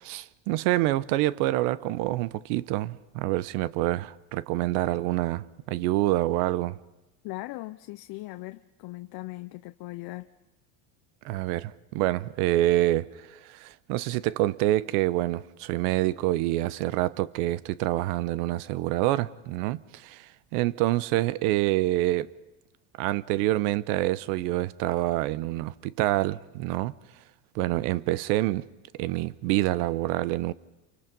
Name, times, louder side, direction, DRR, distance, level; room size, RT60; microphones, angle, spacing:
voice 1, 0.0-6.8 11.2-22.3 23.0-26.9 27.5-28.6 29.0-30.5, right 16 dB, 70° right, 0.9 m, -27 dB
voice 2, 7.2-10.3, left 20 dB, 50° left, 0.8 m, -39 dB
28.0 x 24.5 x 5.4 m
supercardioid pair, 115°, 48 cm